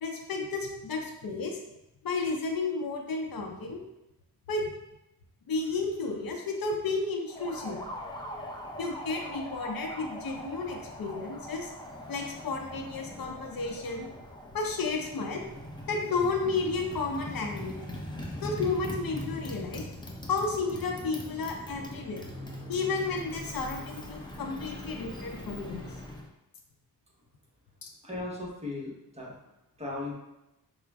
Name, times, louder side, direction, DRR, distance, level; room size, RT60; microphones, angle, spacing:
voice 1, 0.0-1.6 2.0-3.8 4.5-4.7 5.5-7.8 8.8-11.7 12.1-14.1 14.5-15.4 15.9-17.8 18.4-19.9 20.3-22.2 22.7-25.9 27.8-27.9, left 3 dB, 70° left, 2 dB, 0.6 m, -32 dB
Motorcycle, 7.3-26.3, left 1 dB, 10° left, 0.5 m, -41 dB
voice 2, 28.0-29.3 29.8-30.1, left 2 dB, 15° right, -4 dB, 1.0 m, -37 dB
4.8 x 2.1 x 3.4 m, 0.90 s
wide cardioid pair, 95°, 37 cm